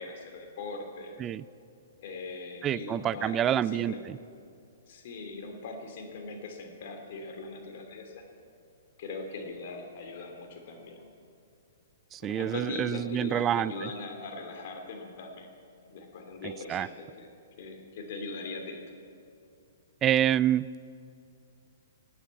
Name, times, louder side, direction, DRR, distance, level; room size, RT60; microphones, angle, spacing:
voice 1, 0.0-1.2 2.0-4.1 4.9-8.2 9.0-11.0 12.2-15.5 15.9-17.3 17.6-18.8, left 3 dB, 55° left, 4 dB, 2.8 m, -40 dB
voice 2, 2.6-4.2 12.1-13.9 16.7-16.9 20.0-20.7, right 11 dB, 20° right, 18 dB, 0.4 m, -27 dB
17.0 x 9.1 x 8.3 m, 2.5 s
hypercardioid pair, 140°, 0 cm